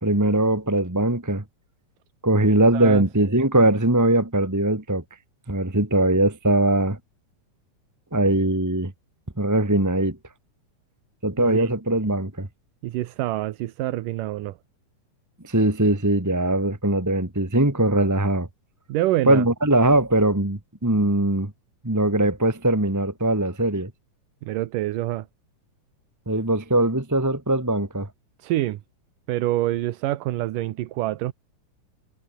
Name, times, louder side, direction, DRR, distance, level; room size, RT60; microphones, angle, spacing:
voice 1, 0.0-1.4 2.2-5.0 5.5-7.0 8.1-8.9 9.4-10.2 11.2-12.5 15.4-18.5 19.2-21.5 21.8-23.9 26.2-28.1, right 1 dB, 5° right, 1.6 m, -21 dB
voice 2, 2.7-3.0 11.5-11.7 12.8-14.6 18.9-19.4 24.4-25.3 28.4-28.8 29.3-31.3, right 15 dB, 80° right, 2.6 m, -26 dB
omnidirectional pair, 3.8 m